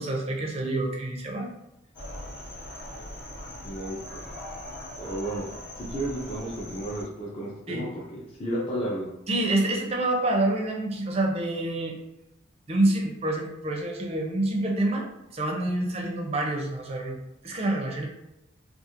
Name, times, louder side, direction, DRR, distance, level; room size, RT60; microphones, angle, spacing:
voice 1, 0.0-1.5 7.7-7.9 9.3-11.9 12.7-15.1 15.3-17.2 17.4-18.1, right 2 dB, 30° right, 0 dB, 0.4 m, -27 dB
sound 1, 1.9-7.0, left 1 dB, 65° left, 1.0 m, -40 dB
voice 2, 3.6-4.2 5.0-5.5 5.8-9.1, right 1 dB, 30° left, -5 dB, 0.4 m, -33 dB
2.4 x 2.3 x 2.8 m, 0.88 s
head